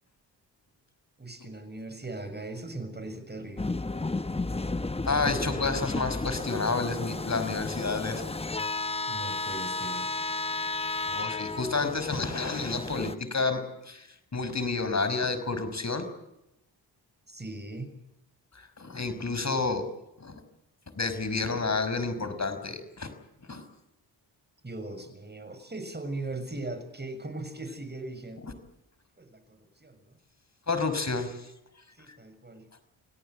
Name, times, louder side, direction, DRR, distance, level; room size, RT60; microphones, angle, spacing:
voice 1, 1.2-3.8 9.1-10.1 17.3-17.9 24.6-28.4 29.2-30.2 32.0-32.6, right 2 dB, 20° right, 9 dB, 7.0 m, -39 dB
sound 1, 3.6-13.1, left 3 dB, 15° left, 1.0 m, -33 dB
voice 2, 5.0-8.2 11.1-14.1 14.3-16.1 18.8-19.8 20.2-20.4 21.0-23.1 23.5-23.6 30.7-31.5, left 3 dB, 35° left, 11 dB, 5.7 m, -30 dB
28.0 x 17.5 x 7.8 m, 0.85 s
cardioid pair, 55°, 44 cm